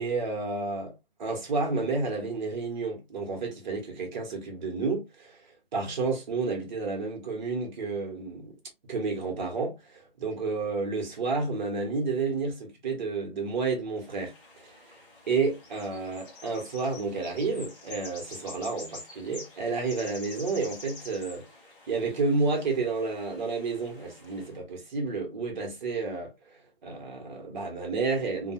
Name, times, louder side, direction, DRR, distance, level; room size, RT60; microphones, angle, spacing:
voice 1, 0.0-5.4 5.7-8.5 8.9-14.3 14.6-15.0 15.3-21.4 21.9-26.3 26.8-28.5, right 4 dB, 50° right, 1.2 m, -30 dB
sound 1, 14.0-24.5, left 2 dB, 15° left, 0.6 m, -47 dB
2.5 x 2.4 x 2.7 m
figure-of-eight pair, 145°, 30 cm